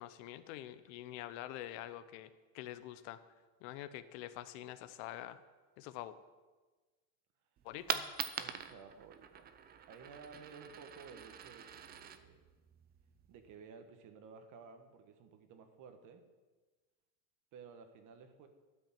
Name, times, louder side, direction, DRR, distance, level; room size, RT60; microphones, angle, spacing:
voice 1, 0.0-3.2 3.6-5.4 5.8-6.2 7.6-8.1, left 13 dB, 65° left, 12 dB, 0.9 m, -46 dB
Coin (dropping), 7.6-13.5, right 8 dB, 25° right, 0.5 m, -44 dB
voice 2, 8.4-9.5 9.9-12.4 13.3-16.2 17.5-18.5, right 5 dB, 45° right, 7 dB, 1.4 m, -54 dB
12.5 x 5.3 x 7.4 m, 1.3 s
supercardioid pair, 135°, 43 cm